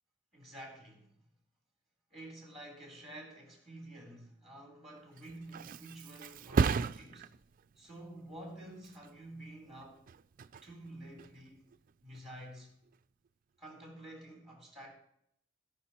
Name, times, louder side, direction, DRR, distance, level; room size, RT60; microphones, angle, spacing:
voice 1, 0.3-1.2 2.1-7.3 7.8-10.0 10.6-11.6 12.0-12.7 13.6-14.9, right 1 dB, ahead, 4.0 m, -50 dB
Thump thud, 5.0-12.4 12.8-13.3, right 5 dB, 45° right, 0.4 m, -37 dB
18.0 x 6.1 x 4.4 m
head